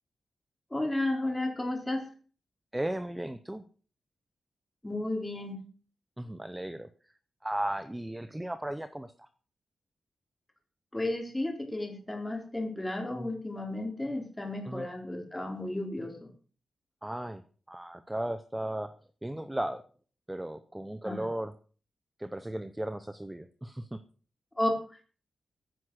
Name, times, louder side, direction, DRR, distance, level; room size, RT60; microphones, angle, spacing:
voice 1, 0.7-2.0 4.8-5.6 10.9-16.3 21.0-21.2 24.6-24.7, left 1 dB, 10° left, 2 dB, 4.3 m, -33 dB
voice 2, 2.7-3.6 6.2-6.9 7.4-9.3 14.7-14.9 17.0-18.9 19.2-19.8 20.3-21.5 22.2-24.0, right 1 dB, 10° right, 11 dB, 0.8 m, -36 dB
15.5 x 9.8 x 6.5 m, 0.41 s
wide cardioid pair, 140°, 0 cm